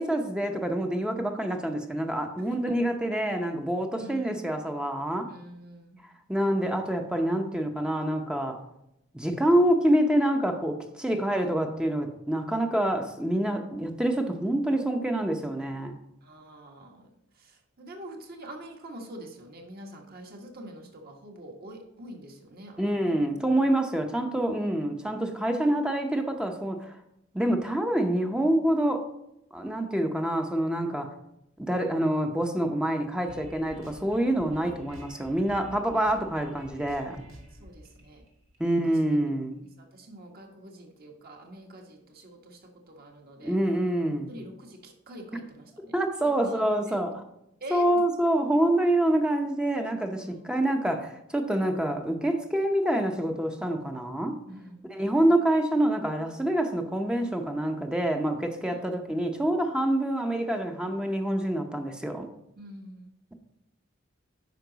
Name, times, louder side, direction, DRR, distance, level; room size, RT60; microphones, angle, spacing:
voice 1, 0.0-5.3 6.3-8.6 9.1-15.9 22.8-26.9 27.3-29.0 29.5-31.1 31.6-37.2 38.6-39.6 43.4-44.3 45.9-47.2 47.7-54.4 54.9-62.3, right 1 dB, 5° right, 4 dB, 0.7 m, -26 dB
voice 2, 2.4-2.7 4.0-4.4 5.3-6.0 16.2-22.8 24.6-24.8 37.5-38.2 38.6-39.0 39.2-39.3 39.8-43.5 44.3-45.9 46.2-46.9 47.6-47.9 50.2-50.5 54.4-54.9 58.7-58.8 62.6-63.1, right 1 dB, 50° right, 2 dB, 1.5 m, -45 dB
sound 1, 33.3-39.1, equal, 80° right, 1.8 m, -49 dB
9.3 x 5.9 x 3.9 m, 0.84 s
head